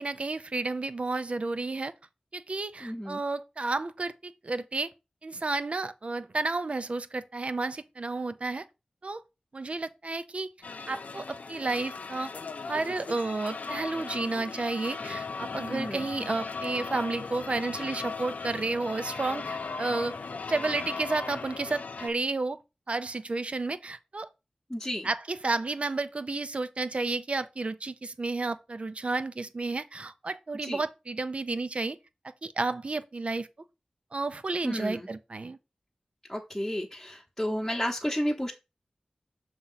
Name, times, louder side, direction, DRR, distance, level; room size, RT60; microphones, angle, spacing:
voice 1, 0.0-1.9 2.3-4.9 5.2-8.6 9.0-9.2 9.5-10.5 10.9-12.3 12.7-20.2 20.5-22.6 22.9-24.3 25.0-32.0 32.4-33.5 34.1-35.6, right 3 dB, 55° right, 0.6 m, -31 dB
voice 2, 2.8-3.2 15.7-16.0 24.7-25.1 30.6-30.8 34.6-35.1 36.3-38.5, equal, 10° left, 1.0 m, -32 dB
sound 1, 10.6-22.1, left 4 dB, 80° left, 0.5 m, -38 dB
6.3 x 2.9 x 5.6 m
wide cardioid pair, 50°, 2 cm